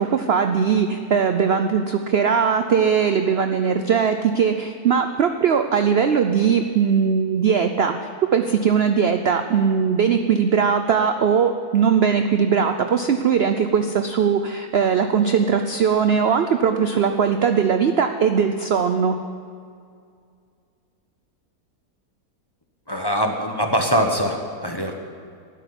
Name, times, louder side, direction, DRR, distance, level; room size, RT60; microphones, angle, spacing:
voice 1, 0.0-19.2, right 6 dB, 60° right, 7 dB, 0.7 m, -20 dB
voice 2, 22.9-24.9, equal, 20° left, 3 dB, 0.9 m, -22 dB
12.5 x 10.0 x 9.7 m, 2.3 s
omnidirectional pair, 1.7 m